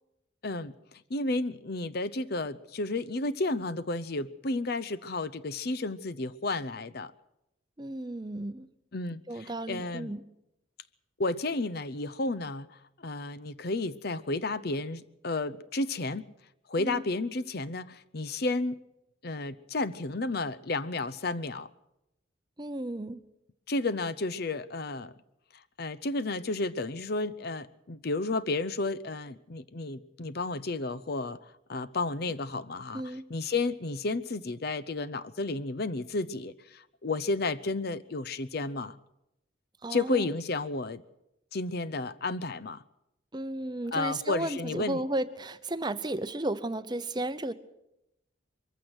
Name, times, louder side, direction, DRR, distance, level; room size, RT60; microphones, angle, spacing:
voice 1, 0.4-7.1 8.9-10.1 11.2-16.2 16.7-18.8 19.2-21.7 23.7-25.1 25.5-31.4 31.7-39.0 39.9-41.0 41.5-42.8 43.9-45.0, left 2 dB, 50° left, 0.7 m, -32 dB
voice 2, 7.8-8.7 9.3-10.2 16.8-17.0 22.6-23.2 32.9-33.2 39.8-40.3 43.3-47.5, right 1 dB, 20° right, 0.7 m, -34 dB
23.0 x 15.0 x 7.9 m
head